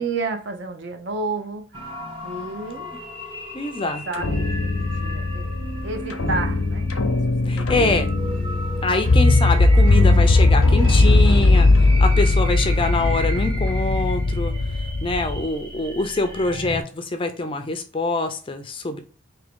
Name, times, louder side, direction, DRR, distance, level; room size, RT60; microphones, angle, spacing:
voice 1, 0.0-1.6 2.2-2.9 3.8-4.5 5.0-5.5 5.8-6.9 7.4-7.6, right 3 dB, 55° right, 0.6 m, -30 dB
sound 1, 1.7-16.8, right 1 dB, 25° right, 0.8 m, -35 dB
voice 2, 3.5-4.0 7.5-8.1 8.8-14.5 15.0-19.0, left 3 dB, 25° left, 0.4 m, -25 dB
sound 2, 4.1-15.4, left 2 dB, 85° left, 0.7 m, -19 dB
3.6 x 2.9 x 3.5 m
head